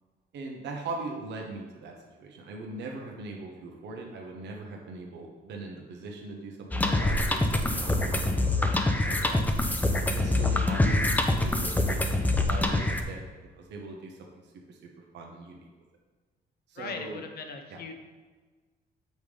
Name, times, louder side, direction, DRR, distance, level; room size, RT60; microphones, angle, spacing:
voice 1, 0.3-1.9 2.2-9.4 10.1-11.0 11.3-12.0 12.5-13.3 13.6-14.2 14.7-14.8 15.1-15.6 16.7-17.2 17.7-17.8, right 3 dB, 85° right, 1 dB, 1.1 m, -40 dB
sound 1, 6.7-13.0, left 2 dB, 10° left, 0.6 m, -25 dB
voice 2, 16.8-17.9, left 5 dB, 65° left, 5 dB, 0.9 m, -39 dB
7.9 x 5.4 x 3.4 m, 1.4 s
cardioid pair, 125°, 18 cm